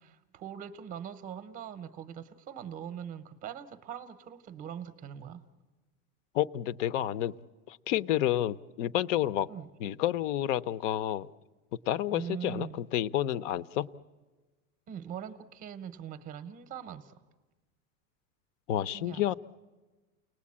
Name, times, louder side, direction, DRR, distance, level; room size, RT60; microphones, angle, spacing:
voice 1, 0.0-5.4 9.5-9.7 12.1-12.8 14.9-17.2 18.9-19.2, right 9 dB, 20° right, 12 dB, 0.7 m, -42 dB
voice 2, 6.3-7.4 7.7-9.5 9.8-11.3 11.9-13.9 18.7-19.3, left 12 dB, 55° left, 19 dB, 0.7 m, -30 dB
29.5 x 19.5 x 8.6 m, 1.3 s
supercardioid pair, 175°, 43 cm